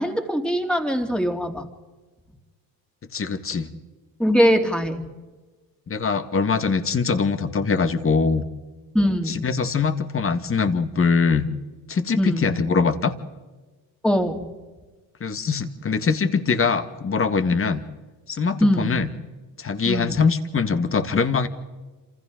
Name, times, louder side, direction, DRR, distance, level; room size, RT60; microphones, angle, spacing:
voice 1, 0.0-1.7 4.2-5.1 8.9-9.4 12.2-12.5 14.0-14.4 18.6-18.9 19.9-20.2, equal, ahead, 3 dB, 2.8 m, -22 dB
voice 2, 3.1-3.7 5.9-8.5 9.3-11.5 11.9-13.1 15.2-17.8 18.3-19.1 19.6-21.5, left 5 dB, 35° left, 9 dB, 1.9 m, -22 dB
28.0 x 27.5 x 3.9 m, 1.3 s
cardioid pair, 105°, 40 cm